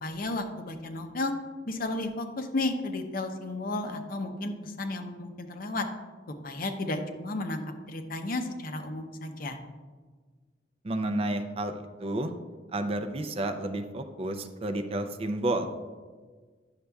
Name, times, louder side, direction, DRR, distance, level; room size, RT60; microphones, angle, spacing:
voice 1, 0.0-1.3 1.7-5.8 6.4-7.6 7.9-9.6, left 2 dB, 55° left, 6 dB, 0.6 m, -33 dB
voice 2, 10.8-12.3 12.7-15.7, right 1 dB, 35° right, 7 dB, 0.4 m, -31 dB
9.7 x 6.4 x 2.3 m, 1.4 s
head